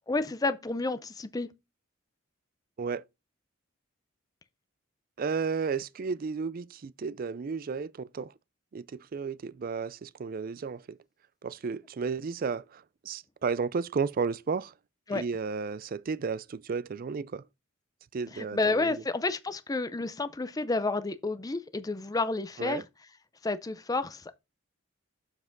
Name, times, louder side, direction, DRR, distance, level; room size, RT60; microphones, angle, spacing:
voice 1, 0.1-1.5 15.1-15.2 18.3-22.8 23.4-24.3, left 3 dB, 20° left, 0.5 m, -30 dB
voice 2, 5.2-8.3 8.7-11.0 11.4-14.7 15.1-17.4 18.1-19.0 22.6-22.8, right 5 dB, 45° right, 0.4 m, -33 dB
7.2 x 5.8 x 3.9 m
head